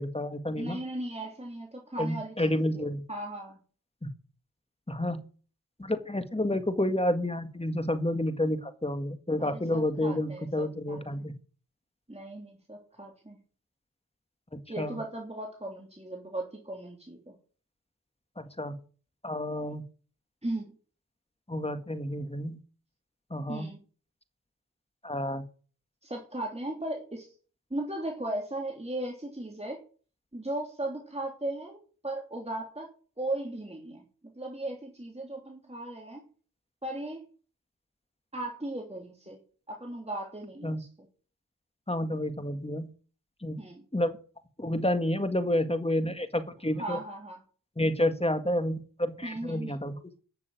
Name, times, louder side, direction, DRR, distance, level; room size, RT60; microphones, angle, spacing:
voice 1, 0.0-0.8 2.0-3.0 4.9-5.2 5.8-11.3 14.8-15.0 18.4-18.8 19.2-19.8 21.5-22.6 23.3-23.7 25.0-25.4 40.6-40.8 41.9-42.9 43.4-43.6 43.9-44.1 44.6-47.0 47.8-50.2, left 1 dB, 15° left, 9 dB, 1.8 m, -30 dB
voice 2, 0.6-3.6 9.4-11.2 12.1-13.4 14.7-17.3 20.4-20.7 23.5-23.8 26.0-27.3 27.7-29.8 30.3-31.8 32.0-32.9 33.2-34.0 34.3-36.2 36.8-37.2 38.3-39.4 39.7-41.1 43.6-43.8 46.8-47.4 49.2-49.8, right 1 dB, 15° right, 0 dB, 3.2 m, -37 dB
12.0 x 7.0 x 9.2 m, 0.41 s
cardioid pair, 55°, 36 cm